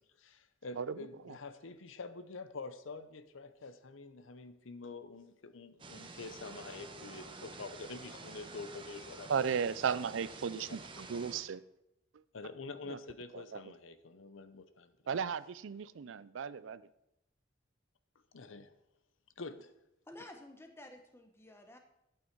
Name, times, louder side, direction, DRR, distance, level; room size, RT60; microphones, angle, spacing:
voice 1, 0.0-9.3 10.5-10.6 11.1-11.2 12.3-14.9 18.3-18.7 19.4-19.7, left 3 dB, 85° left, 12 dB, 0.8 m, -47 dB
voice 2, 0.8-1.4 9.3-11.6 12.9-13.0 13.3-13.6 15.1-16.8, right 6 dB, 75° right, 17 dB, 0.4 m, -36 dB
sound 1, 5.8-11.4, right 3 dB, 25° right, 1.0 m, -49 dB
voice 3, 20.1-21.8, left 1 dB, 10° left, 5 dB, 1.0 m, -52 dB
11.5 x 8.7 x 4.6 m, 0.86 s
head